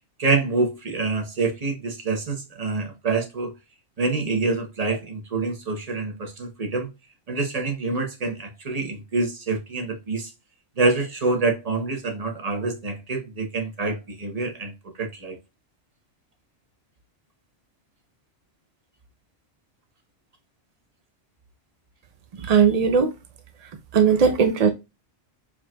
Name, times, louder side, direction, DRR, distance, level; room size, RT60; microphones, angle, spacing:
voice 1, 0.2-3.5 4.0-6.9 7.3-10.3 10.8-14.7 15.0-15.4, right 3 dB, 35° right, 0.9 m, -26 dB
voice 2, 22.4-23.1 23.6-24.7, right 6 dB, 65° right, 0.4 m, -19 dB
4.9 x 2.8 x 2.2 m
omnidirectional pair, 1.2 m